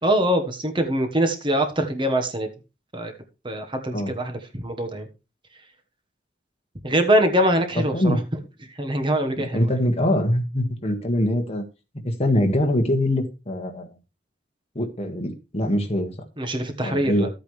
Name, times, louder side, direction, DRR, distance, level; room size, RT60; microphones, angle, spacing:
voice 1, 0.0-2.5 2.9-3.1 3.4-5.1 6.8-8.2 8.7-9.7 16.4-17.3, right 1 dB, 25° right, 1.3 m, -23 dB
voice 2, 9.5-11.6 12.0-13.9 14.7-16.1 16.8-17.3, left 1 dB, 35° left, 1.7 m, -23 dB
12.5 x 8.7 x 3.2 m
head